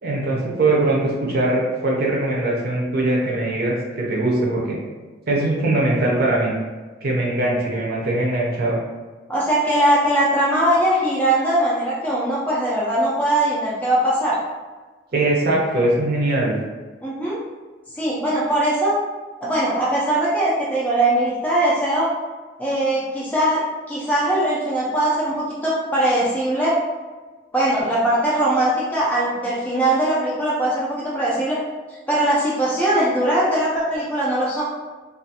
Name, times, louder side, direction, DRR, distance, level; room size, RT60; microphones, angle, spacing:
voice 1, 0.0-4.8 5.3-6.5 7.0-8.8 15.1-16.5, right 2 dB, 55° right, -3 dB, 0.6 m, -21 dB
voice 2, 9.3-14.4 17.0-17.4 18.0-19.0 19.4-22.1 22.6-26.8 27.5-31.6 32.1-34.6, right 1 dB, 10° left, -7 dB, 0.4 m, -20 dB
2.4 x 2.3 x 2.7 m, 1.3 s
head